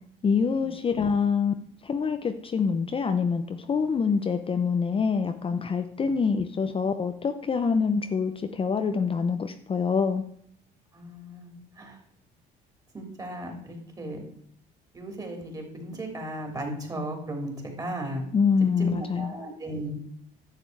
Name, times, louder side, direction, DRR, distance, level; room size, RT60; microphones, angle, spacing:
voice 1, 0.2-1.5 1.8-10.2 18.3-19.3, left 5 dB, 30° left, 7 dB, 0.8 m, -25 dB
voice 2, 10.9-11.5 11.8-11.9 12.9-14.2 14.9-18.2 18.8-20.0, right 1 dB, 20° right, 2 dB, 3.4 m, -36 dB
11.0 x 6.9 x 4.7 m, 0.68 s
cardioid pair, 100°, 18 cm